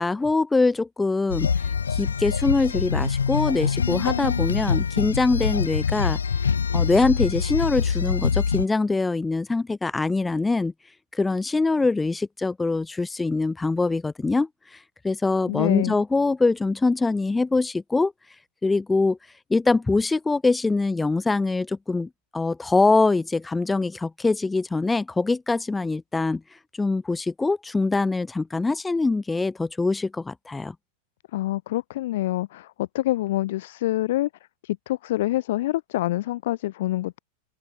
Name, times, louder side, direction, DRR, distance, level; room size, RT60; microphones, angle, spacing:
voice 1, 0.0-1.5 1.9-6.2 6.7-10.7 11.1-14.5 15.0-18.1 18.6-19.2 19.5-26.4 26.7-30.7, left 3 dB, 10° left, 0.5 m, -23 dB
sound 1, 1.3-8.6, left 6 dB, 70° left, 0.7 m, -24 dB
voice 2, 15.5-15.9 31.3-34.3 34.6-37.2, left 16 dB, 55° left, 1.9 m, -26 dB
open air
figure-of-eight pair, 90°, 0 cm